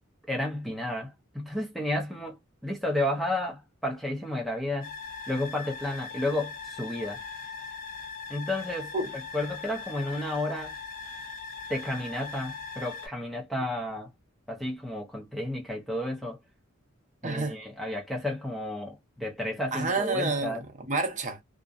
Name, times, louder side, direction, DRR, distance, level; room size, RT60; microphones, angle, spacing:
voice 1, 0.3-4.9 5.3-7.2 8.3-8.9 9.3-10.8 11.7-14.1 14.5-16.4 17.2-20.6, left 1 dB, ahead, 0.5 m, -32 dB
sound 1, 4.8-13.1, left 5 dB, 40° left, 0.9 m, -40 dB
voice 2, 17.2-17.6 19.7-21.4, right 3 dB, 35° right, 0.7 m, -29 dB
2.5 x 2.1 x 2.3 m
head